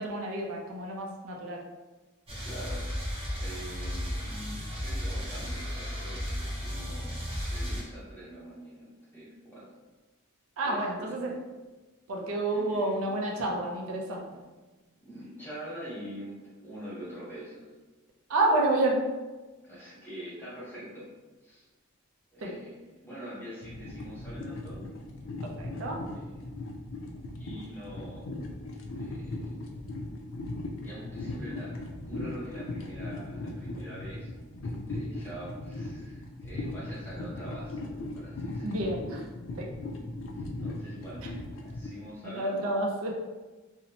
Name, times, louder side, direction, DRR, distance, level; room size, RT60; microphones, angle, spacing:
voice 1, 0.0-1.6 10.6-11.3 12.1-14.3 18.3-19.1 22.4-22.5 25.4-26.0 38.6-39.2 39.6-39.7 42.2-43.1, right 2 dB, 80° right, 0 dB, 0.5 m, -29 dB
sound 1, 2.3-7.8, equal, 30° right, 0.7 m, -34 dB
voice 2, 2.4-2.8 3.3-7.1 7.5-8.8 9.1-9.6 10.6-11.4 12.5-13.1 15.0-16.4 16.6-17.6 19.6-21.1 21.4-21.7 22.3-24.9 25.7-25.8 26.1-26.5 27.3-28.3 28.7-29.5 30.8-31.7 32.0-34.3 34.6-37.8 38.1-38.7 40.3-41.3 41.6-42.9, right 1 dB, 10° left, -9 dB, 0.9 m, -44 dB
sound 2, 23.6-41.9, left 2 dB, 65° left, 0.4 m, -38 dB
2.6 x 2.0 x 2.8 m, 1.2 s
head